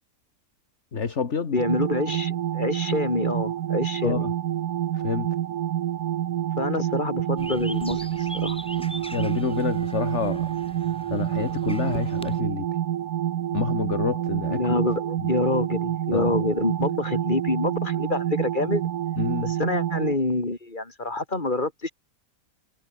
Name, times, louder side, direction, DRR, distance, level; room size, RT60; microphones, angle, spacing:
voice 1, 0.9-1.6 4.0-4.3 4.9-5.3 9.1-10.5 11.1-12.7 13.5-14.6 15.2-15.3 16.1-16.5 19.2-19.5, left 5 dB, 50° left, 2.0 m, -28 dB
voice 2, 1.5-4.3 6.6-8.0 8.3-8.6 14.5-18.8 19.4-21.9, left 2 dB, 30° left, 3.7 m, -26 dB
sound 1, 1.6-20.1, right 11 dB, 75° right, 1.3 m, -28 dB
sound 2, 7.4-12.4, equal, 5° left, 2.3 m, -41 dB
omnidirectional pair, 1.7 m